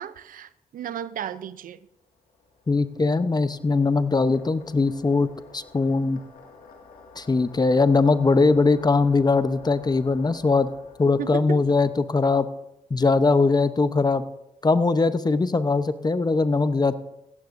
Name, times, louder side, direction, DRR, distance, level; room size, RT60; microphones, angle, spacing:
voice 1, 0.0-1.8 11.2-11.6, right 9 dB, 70° right, 15 dB, 0.6 m, -34 dB
sound 1, 1.9-12.6, left 4 dB, 80° left, 2.1 m, -50 dB
voice 2, 2.7-5.3 5.5-6.2 7.2-10.7 11.0-12.5 12.9-14.2 14.6-16.9, left 3 dB, 30° left, 13 dB, 0.8 m, -21 dB
17.0 x 15.0 x 2.6 m, 0.87 s
supercardioid pair, 50°, 15 cm